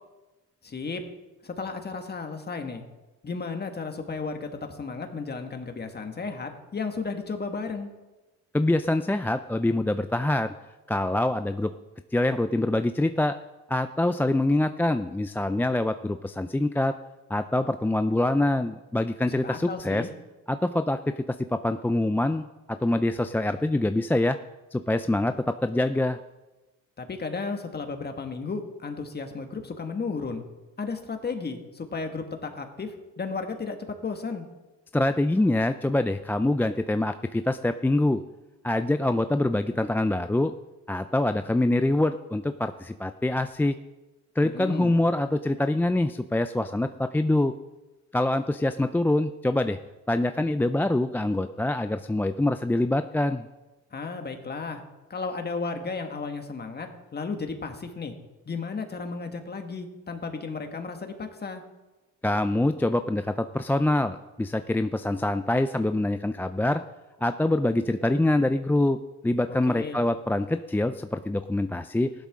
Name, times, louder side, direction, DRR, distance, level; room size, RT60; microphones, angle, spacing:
voice 1, 0.6-1.0 1.4-2.8 3.2-7.9 19.2-20.1 27.0-30.4 30.8-34.5 44.5-44.9 53.9-54.8 55.1-58.1 58.4-61.6 69.5-70.1, left 4 dB, 35° left, 5 dB, 1.7 m, -34 dB
voice 2, 8.5-10.5 10.9-11.7 12.1-13.3 13.7-16.9 17.3-20.1 20.5-24.4 24.7-26.2 34.9-38.2 38.6-40.5 40.9-43.8 44.4-47.5 48.1-49.8 50.1-53.5 62.2-66.8 67.2-69.0 69.2-72.1, left 1 dB, 5° left, 9 dB, 0.3 m, -25 dB
15.0 x 11.5 x 3.6 m, 1.1 s
cardioid pair, 90°, 30 cm